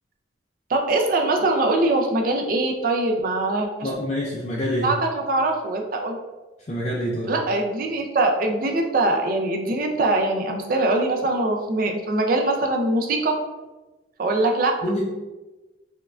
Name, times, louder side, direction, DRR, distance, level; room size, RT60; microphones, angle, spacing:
voice 1, 0.7-3.9 4.8-6.2 7.3-13.3 14.2-14.7, right 2 dB, 50° right, 3 dB, 0.4 m, -22 dB
voice 2, 3.8-4.9 6.7-7.4 14.8-15.0, equal, 35° left, -4 dB, 0.4 m, -26 dB
4.4 x 2.2 x 2.4 m, 1.1 s
head